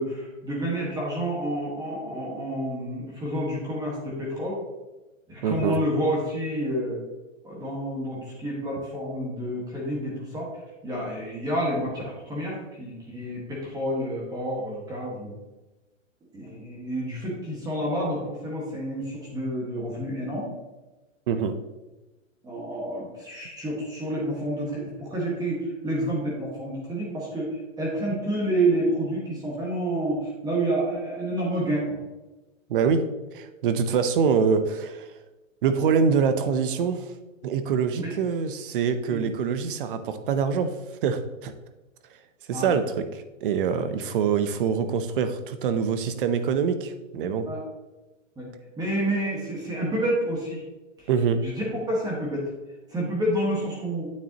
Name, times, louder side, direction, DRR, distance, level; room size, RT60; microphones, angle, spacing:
voice 1, 0.0-4.6 5.3-7.0 7.4-10.5 10.8-15.3 16.3-20.5 22.4-32.0 38.0-38.1 39.1-39.2 42.5-42.7 47.4-47.6 48.4-48.5 48.8-50.6 51.4-52.4 52.9-54.1, right 1 dB, 10° right, 1.6 m, -29 dB
voice 2, 5.4-5.8 21.3-21.6 32.7-33.0 33.3-35.1 35.6-37.1 37.4-40.7 41.0-41.5 42.5-47.5 51.1-51.4, right 6 dB, 40° right, 0.7 m, -25 dB
9.4 x 6.9 x 2.9 m
hypercardioid pair, 160°, 40 cm